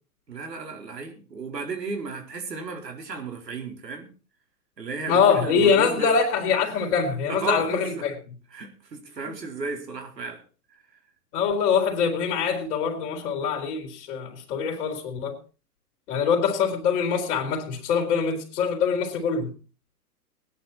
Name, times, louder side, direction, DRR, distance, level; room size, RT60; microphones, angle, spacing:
voice 1, 0.3-4.1 4.8-6.1 7.3-8.1 8.5-10.4, right 4 dB, 85° right, 4.2 m, -34 dB
voice 2, 5.1-8.1 9.3-9.4 11.3-15.4 16.1-19.5, left 6 dB, 45° left, 3.5 m, -24 dB
20.0 x 10.0 x 4.2 m
hypercardioid pair, 125°, 48 cm